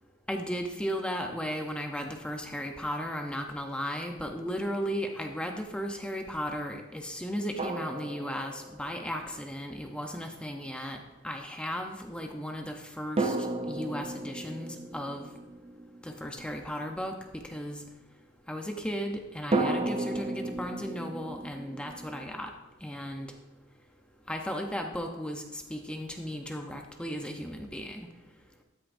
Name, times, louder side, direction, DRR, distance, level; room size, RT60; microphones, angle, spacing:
voice 1, 0.3-11.0 11.2-13.4 13.6-15.3 16.0-17.2 17.4-17.8 18.5-22.5 22.8-23.3 24.3-28.1, equal, 5° left, 3 dB, 0.7 m, -35 dB
sound 1, 4.0-4.1 7.6-9.1 13.2-16.8 19.5-22.3, right 2 dB, 30° right, 0.6 m, -34 dB
13.0 x 9.5 x 2.6 m, 1.0 s
head